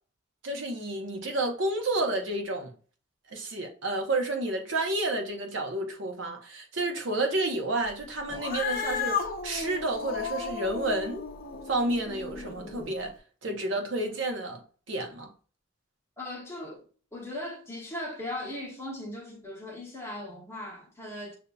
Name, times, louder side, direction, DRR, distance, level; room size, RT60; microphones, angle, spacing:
voice 1, 0.4-2.7 3.3-11.2 11.7-13.1 13.4-14.6 14.9-15.3, right 2 dB, 60° right, 0.8 m, -30 dB
Cat, 8.3-12.9, left 6 dB, 45° left, 0.6 m, -34 dB
voice 2, 16.2-16.9 17.1-21.4, left 1 dB, 10° left, 1.0 m, -38 dB
6.7 x 2.7 x 2.3 m
head